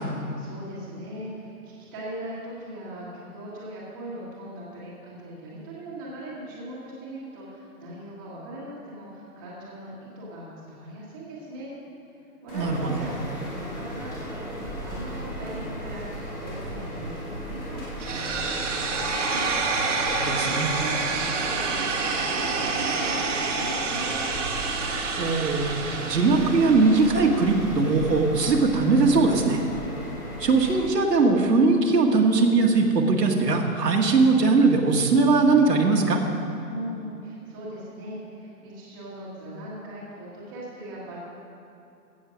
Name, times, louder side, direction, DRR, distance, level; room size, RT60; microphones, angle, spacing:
voice 1, 0.1-11.7 12.4-19.5 20.3-24.2 36.6-41.2, right 1 dB, 15° right, -7 dB, 1.6 m, -39 dB
sound 1, 12.5-30.8, equal, 15° left, 1.7 m, -36 dB
voice 2, 12.5-13.0 20.2-20.7 25.2-25.7 26.0-29.6 30.4-36.2, right 3 dB, 85° right, 1 dB, 2.0 m, -20 dB
sound 2, 18.0-28.0, right 4 dB, 50° right, 1.5 m, -28 dB
16.0 x 6.7 x 6.4 m, 2.7 s
hypercardioid pair, 170°, 47 cm